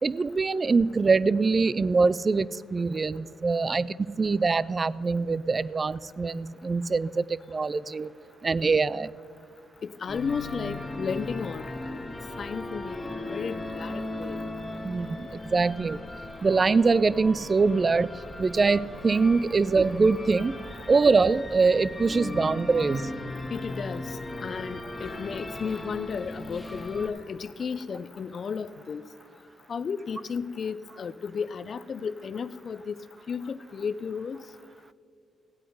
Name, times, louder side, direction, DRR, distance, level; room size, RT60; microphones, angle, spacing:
voice 1, 0.0-8.1 8.4-9.1 14.8-16.0 16.4-18.1 18.4-20.6 20.9-23.1, right 4 dB, 35° right, 0.3 m, -23 dB
voice 2, 9.8-14.4 22.8-22.9 23.5-29.1 29.7-33.0 33.3-34.4, left 6 dB, 55° left, 0.4 m, -34 dB
sound 1, 10.1-27.1, left 2 dB, 15° left, 2.7 m, -38 dB
16.0 x 8.4 x 5.5 m
cardioid pair, 75°, 0 cm